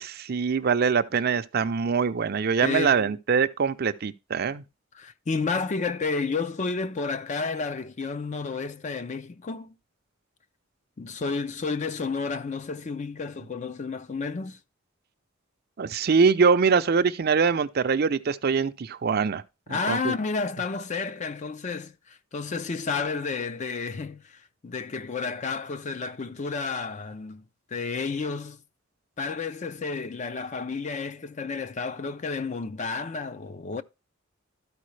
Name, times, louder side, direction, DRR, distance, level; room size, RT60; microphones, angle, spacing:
voice 1, 0.0-4.6 15.8-19.4 19.7-20.1, right 5 dB, 50° right, 0.5 m, -23 dB
voice 2, 2.6-3.0 4.9-9.7 11.0-14.6 19.7-27.4 27.7-28.6 29.2-33.8, left 4 dB, 35° left, 0.5 m, -31 dB
12.5 x 4.7 x 3.2 m
head